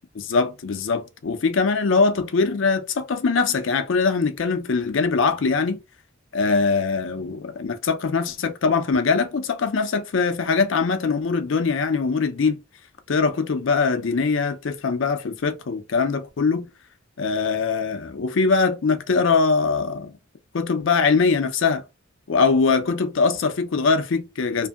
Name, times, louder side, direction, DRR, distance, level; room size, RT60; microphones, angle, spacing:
voice 1, 0.2-5.8 6.3-12.6 13.1-16.7 17.2-20.1 20.5-21.8 22.3-24.7, left 4 dB, 70° left, 0.5 m, -22 dB
2.7 x 2.6 x 2.4 m
head